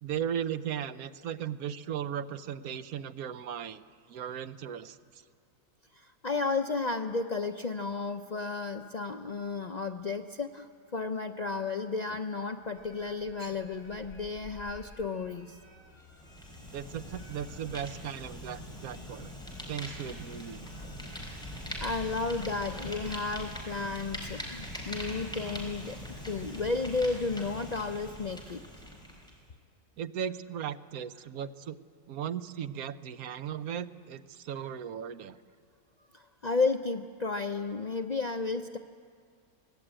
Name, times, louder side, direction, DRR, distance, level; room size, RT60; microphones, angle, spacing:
voice 1, 0.0-3.8 4.1-5.2 16.7-19.3 19.7-20.7 30.0-31.8 32.1-35.4, right 9 dB, 70° right, 12 dB, 1.2 m, -37 dB
voice 2, 5.9-15.6 20.8-21.1 21.6-26.0 26.3-28.6 36.1-38.8, left 3 dB, 90° left, 6 dB, 0.3 m, -33 dB
sound 1, 12.7-27.4, left 1 dB, 45° left, 5.8 m, -54 dB
Fire, 16.0-29.4, equal, 5° left, 4.4 m, -42 dB
23.0 x 19.0 x 8.9 m, 2.3 s
omnidirectional pair, 1.7 m